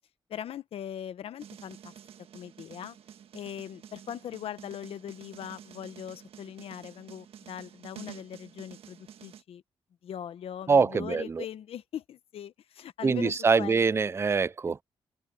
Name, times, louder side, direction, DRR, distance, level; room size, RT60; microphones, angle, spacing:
voice 1, 0.3-1.9 2.3-3.0 3.3-9.6 10.0-14.0, left 10 dB, 80° left, 1.1 m, -40 dB
sound 1, 1.4-9.4, right 9 dB, 85° right, 1.4 m, -49 dB
voice 2, 10.7-11.2 13.0-14.7, right 5 dB, 25° right, 0.4 m, -24 dB
open air
cardioid pair, 90°, 10 cm